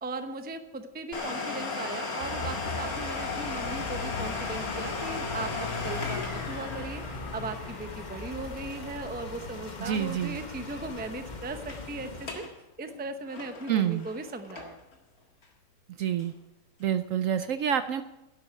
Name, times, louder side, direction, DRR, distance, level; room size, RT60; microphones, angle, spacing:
voice 1, 0.0-7.0 7.3-12.4 12.8-14.8, right 3 dB, 10° right, 8 dB, 0.5 m, -38 dB
Domestic sounds home sounds, 1.1-10.6 10.8-10.9 11.5-11.9 12.2-12.5 12.9-14.9 15.4-15.5 16.2-16.3, left 4 dB, 60° left, 2.3 m, -36 dB
sound 1, 2.2-12.3, left 3 dB, 30° left, 1.1 m, -39 dB
voice 2, 9.8-10.4 13.7-14.1 16.0-16.3 16.8-18.0, right 9 dB, 65° right, 11 dB, 0.9 m, -27 dB
11.0 x 8.0 x 9.4 m, 0.97 s
omnidirectional pair, 1.7 m